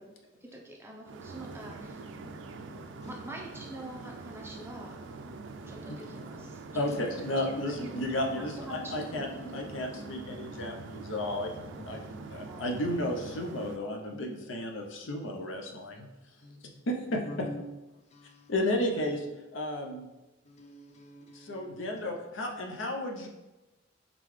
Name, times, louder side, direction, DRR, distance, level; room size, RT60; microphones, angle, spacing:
voice 1, 0.4-2.0 2.9-5.0 5.6-7.4 7.7-8.1 8.4-9.8 12.5-12.7 14.4-14.5, right 1 dB, 15° right, -1 dB, 0.6 m, -46 dB
sound 1, 1.1-13.8, right 3 dB, 70° right, 0.3 m, -44 dB
voice 2, 5.9-6.3 6.7-12.0 12.3-16.1 16.9-17.6 18.5-19.3 19.5-20.1 21.3-23.3, left 1 dB, 80° left, 2 dB, 0.6 m, -33 dB
voice 3, 17.2-17.6 17.9-18.5 20.5-22.1 22.5-22.6, left 2 dB, 35° left, 3 dB, 0.5 m, -47 dB
3.8 x 3.6 x 3.1 m, 1.1 s
head